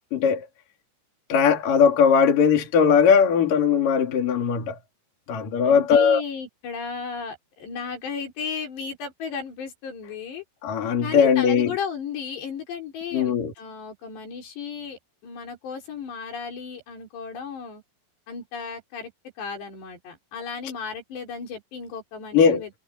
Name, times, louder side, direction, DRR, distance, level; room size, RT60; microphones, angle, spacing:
voice 1, 0.1-0.5 1.3-4.8 5.3-6.2 10.6-11.7 13.1-13.5 22.3-22.6, left 6 dB, 50° left, 4.5 m, -19 dB
voice 2, 5.6-10.4 11.0-17.8 18.3-19.1 19.4-22.7, left 6 dB, 70° left, 6.9 m, -34 dB
omnidirectional pair, 5.0 m